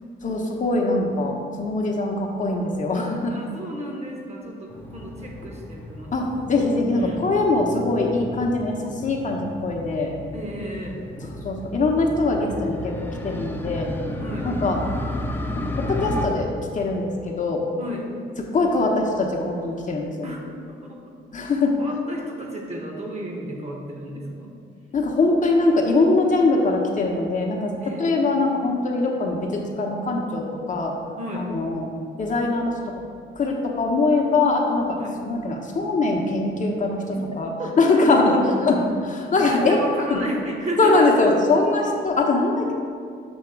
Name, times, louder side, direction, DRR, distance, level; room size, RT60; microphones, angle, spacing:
voice 1, 0.2-3.4 6.1-10.2 11.4-12.9 13.2-13.9 14.4-14.8 15.6-16.5 16.7-17.6 18.5-20.1 21.3-21.7 24.9-27.7 28.0-30.9 31.3-31.9 32.2-32.9 33.4-35.0 35.3-37.5 37.8-39.8 40.1-40.2 40.8-42.7, left 3 dB, 40° left, 0 dB, 0.8 m, -22 dB
voice 2, 3.3-6.3 6.9-7.3 10.3-11.1 14.2-14.5 17.8-18.1 20.2-20.4 20.7-21.1 21.8-24.5 27.8-28.1 31.2-31.5 34.9-35.2 37.1-37.2 37.6-38.4 39.3-41.3, right 1 dB, 35° right, 0 dB, 1.2 m, -32 dB
Motorcycle, 4.7-16.3, left 1 dB, 10° left, 0.7 m, -33 dB
7.0 x 2.9 x 5.8 m, 2.2 s
cardioid pair, 90°, 20 cm